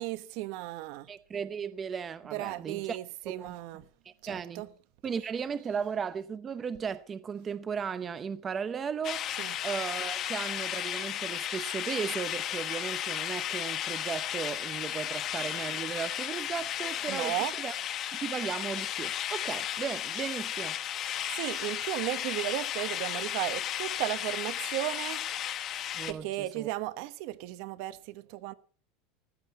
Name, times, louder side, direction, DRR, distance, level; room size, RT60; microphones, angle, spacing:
voice 1, 0.0-1.1 2.2-3.8 4.2-4.7 5.1-5.2 9.3-9.6 14.8-14.9 17.1-17.6 20.1-20.2 21.3-25.3 26.1-28.5, right 16 dB, 50° right, 1.1 m, -35 dB
voice 2, 1.1-3.0 3.2-4.7 5.0-9.3 9.6-17.7 18.1-20.8 25.9-26.7, right 6 dB, 20° right, 0.7 m, -36 dB
sound 1, 9.0-26.1, left 11 dB, 30° left, 1.1 m, -34 dB
15.5 x 13.5 x 4.2 m
supercardioid pair, 165°, 0 cm